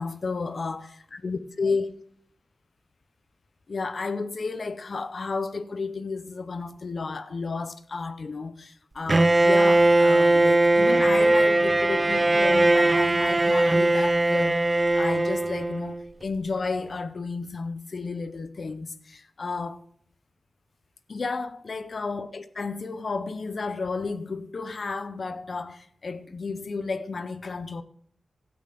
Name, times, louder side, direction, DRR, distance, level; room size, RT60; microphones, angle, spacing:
voice 1, 0.0-1.9 3.7-19.8 21.1-27.8, left 4 dB, 40° left, 0.6 m, -32 dB
Bowed string instrument, 9.1-16.0, right 2 dB, 20° right, 0.4 m, -20 dB
13.0 x 8.8 x 5.0 m
wide cardioid pair, 180°, 0 cm